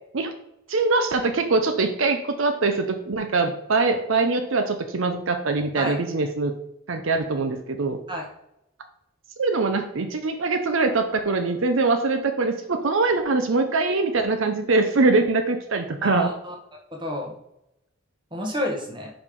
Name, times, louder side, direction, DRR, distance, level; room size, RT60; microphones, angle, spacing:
voice 1, 0.7-6.5 6.9-8.0 9.4-16.3, right 3 dB, 70° right, 7 dB, 0.7 m, -23 dB
voice 2, 16.0-16.5 16.9-17.3 18.3-19.1, left 1 dB, 20° right, 1 dB, 1.3 m, -29 dB
5.2 x 5.1 x 5.3 m, 0.82 s
head